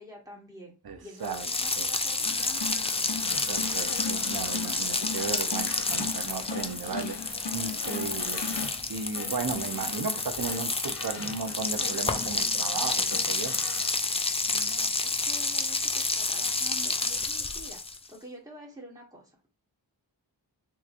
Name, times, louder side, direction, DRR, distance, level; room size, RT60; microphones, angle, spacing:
voice 1, 0.0-0.7 1.0-2.6 14.5-19.3, equal, 10° right, -3 dB, 1.6 m, -47 dB
voice 2, 0.8-1.5 1.8-1.9 3.5-7.2 7.5-8.4 8.9-13.5, right 5 dB, 60° right, 7 dB, 0.7 m, -35 dB
sound 1, 1.2-18.1, left 3 dB, 15° left, 0.3 m, -30 dB
sound 2, 2.2-8.7, left 5 dB, 80° left, 0.6 m, -38 dB
sound 3, 3.2-14.0, left 4 dB, 40° left, 0.7 m, -43 dB
3.6 x 2.9 x 2.5 m, 0.30 s
wide cardioid pair, 65°, 43 cm